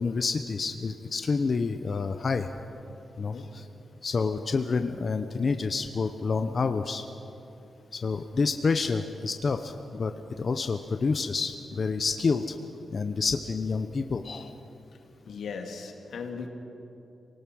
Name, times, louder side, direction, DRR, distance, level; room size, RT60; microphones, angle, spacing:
voice 1, 0.0-2.5 3.2-3.6 4.0-7.0 7.9-12.5 12.9-14.5, left 4 dB, 40° left, 7 dB, 0.7 m, -28 dB
voice 2, 3.2-3.5 15.2-16.5, left 5 dB, 90° left, 3 dB, 2.3 m, -38 dB
27.0 x 18.5 x 6.3 m, 2.8 s
wide cardioid pair, 155°, 0 cm